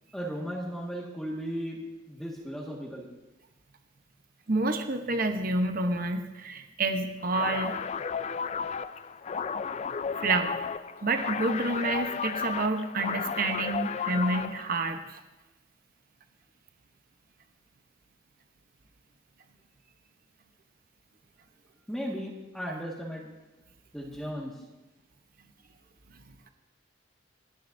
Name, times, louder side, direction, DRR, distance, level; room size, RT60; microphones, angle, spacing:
voice 1, 0.1-3.1 21.9-23.3 23.9-24.6, equal, ahead, -2 dB, 1.7 m, -36 dB
voice 2, 4.5-7.8 10.2-10.5 11.0-15.2, right 2 dB, 45° right, 6 dB, 0.9 m, -29 dB
sound 1, 7.3-14.7, left 6 dB, 35° left, 0.3 m, -33 dB
29.0 x 10.5 x 2.7 m, 1.1 s
head